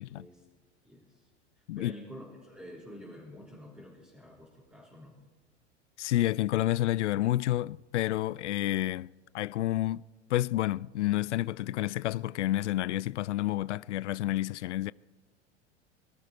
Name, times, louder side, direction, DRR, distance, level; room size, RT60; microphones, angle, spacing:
voice 1, 0.1-0.5 0.8-1.3 1.6-5.2, equal, 5° right, 3.9 m, -49 dB
voice 2, 6.0-9.1 9.3-10.0 10.3-14.9, left 15 dB, 75° left, 0.5 m, -29 dB
23.0 x 12.5 x 4.5 m
hypercardioid pair, 90°, 35 cm